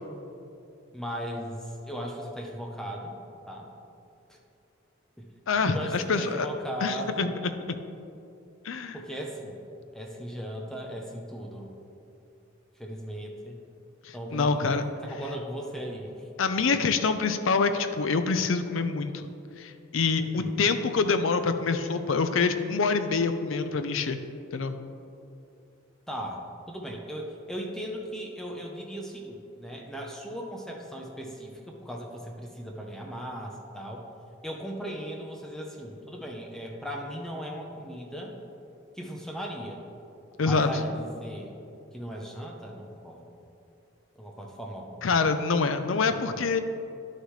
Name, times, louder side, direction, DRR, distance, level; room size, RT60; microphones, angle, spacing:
voice 1, 0.9-3.2 3.5-3.7 4.3-4.4 5.2-5.3 5.6-7.3 8.9-9.6 9.9-11.7 12.8-13.6 14.1-14.7 15.0-16.3 20.2-20.6 26.1-26.4 26.7-34.0 34.4-38.4 38.9-39.8 40.4-41.5 41.9-43.4 44.2-45.1, equal, 5° left, 0 dB, 0.7 m, -37 dB
voice 2, 5.5-6.5 6.8-7.5 8.6-9.0 14.0-14.8 16.4-24.2 24.5-24.7 40.4-40.7 45.0-46.6, left 4 dB, 75° left, 9 dB, 0.5 m, -26 dB
11.0 x 6.6 x 3.2 m, 2.7 s
head